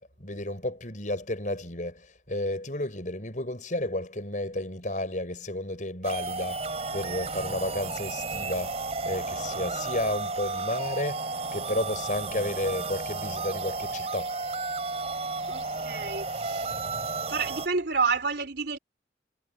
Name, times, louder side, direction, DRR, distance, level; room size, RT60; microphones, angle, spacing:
voice 1, 0.0-14.4, left 1 dB, 45° left, 6.5 m, -32 dB
sound 1, 6.0-17.7, right 3 dB, 35° right, 4.5 m, -33 dB
voice 2, 15.5-16.8 17.3-18.8, right 4 dB, 70° right, 3.5 m, -29 dB
head